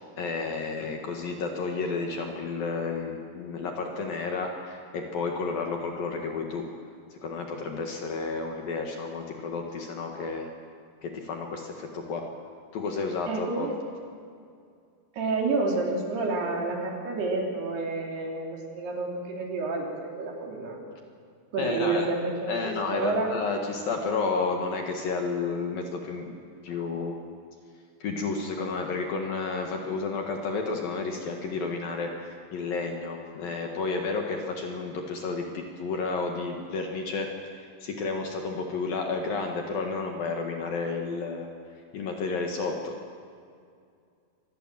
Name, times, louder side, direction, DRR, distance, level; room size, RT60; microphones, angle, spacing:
voice 1, 0.0-6.6 7.2-10.5 11.0-12.2 12.7-13.7 21.6-22.1 22.5-26.3 26.6-27.2 28.0-37.3 37.6-41.5 41.9-42.9, left 4 dB, 60° left, 2 dB, 3.0 m, -31 dB
voice 2, 13.3-13.8 15.1-20.8 21.5-23.3, right 3 dB, 60° right, 0 dB, 4.9 m, -29 dB
26.0 x 19.5 x 7.6 m, 2.3 s
omnidirectional pair, 5.5 m